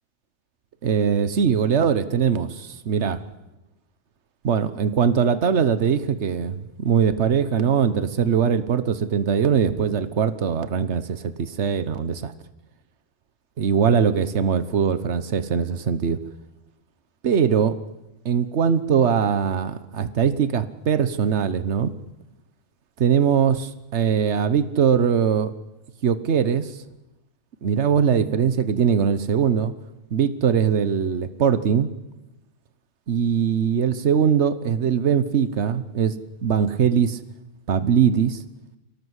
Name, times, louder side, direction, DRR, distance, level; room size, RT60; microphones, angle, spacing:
voice 1, 0.8-3.2 4.4-12.3 13.6-16.2 17.2-17.7 18.2-21.9 23.0-25.5 26.0-26.7 27.6-29.7 30.1-31.9 33.1-36.1 36.4-37.2 37.7-38.4, right 7 dB, 65° right, 13 dB, 1.4 m, -21 dB
24.0 x 17.5 x 8.2 m, 0.99 s
omnidirectional pair, 1.2 m